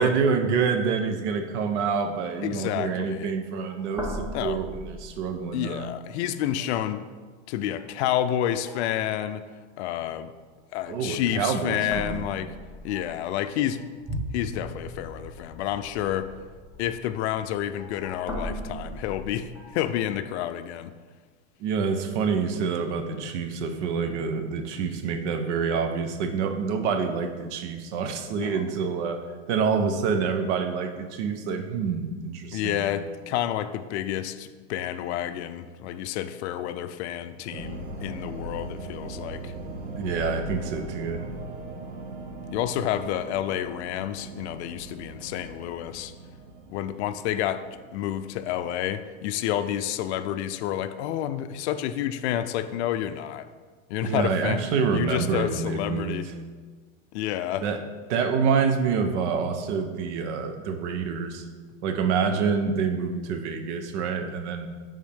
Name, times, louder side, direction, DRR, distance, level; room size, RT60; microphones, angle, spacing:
voice 1, 0.0-5.9 10.9-12.2 21.6-32.8 40.0-41.3 54.0-56.2 57.6-57.8 58.1-61.4 61.8-64.7, right 5 dB, 65° right, 6 dB, 0.9 m, -27 dB
voice 2, 2.4-3.3 4.3-4.6 5.5-7.1 7.5-9.4 9.8-10.3 10.7-12.6 12.8-13.8 14.3-16.3 16.8-20.9 28.3-28.6 32.5-39.5 42.5-46.1 46.7-47.6 47.9-53.5 53.9-54.6 54.9-56.3 57.1-57.7, left 11 dB, 60° left, 11 dB, 0.5 m, -29 dB
sound 1, 3.1-3.3 3.5-5.9 6.4-6.9 7.8-8.0 8.4-9.3 10.8-11.3 11.8-20.5, equal, 5° right, 1.0 m, -39 dB
sound 2, 37.5-49.6, right 1 dB, 80° right, 1.4 m, -39 dB
9.9 x 3.7 x 3.5 m, 1.5 s
supercardioid pair, 130°, 38 cm